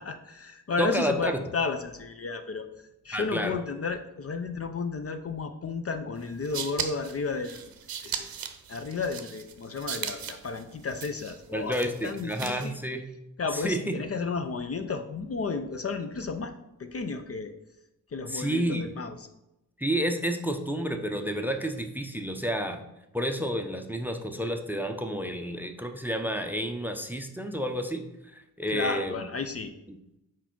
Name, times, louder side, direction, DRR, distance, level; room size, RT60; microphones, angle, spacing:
voice 1, 0.0-2.7 3.0-7.7 8.0-8.3 8.7-12.8 13.4-16.5 16.8-17.5 18.1-19.3 28.7-29.7, left 4 dB, 40° left, 8 dB, 0.5 m, -33 dB
voice 2, 0.8-1.4 3.1-3.6 11.5-13.1 13.5-13.9 18.3-19.0 19.8-22.8 23.1-28.0 28.3-29.3 29.9-30.0, equal, 5° right, 6 dB, 0.6 m, -30 dB
sound 1, 6.2-12.8, right 7 dB, 70° right, 0.7 m, -38 dB
4.7 x 4.5 x 5.9 m, 0.90 s
cardioid pair, 90°, 37 cm